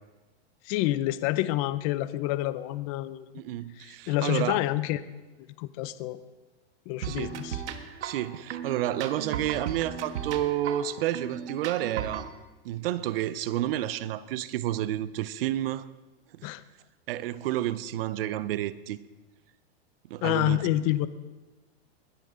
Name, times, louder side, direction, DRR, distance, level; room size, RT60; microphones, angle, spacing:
voice 1, 0.6-3.3 3.8-5.0 5.6-6.2 6.9-7.6 16.4-16.6 20.2-21.1, left 15 dB, 30° left, 0.5 m, -28 dB
voice 2, 3.3-4.6 7.0-7.4 8.0-12.3 12.6-15.9 16.3-16.5 17.1-19.0 20.1-20.6, right 13 dB, 60° right, 0.8 m, -30 dB
sound 1, 7.0-12.3, right 8 dB, 85° right, 1.6 m, -36 dB
21.0 x 13.5 x 3.8 m
supercardioid pair, 160°, 33 cm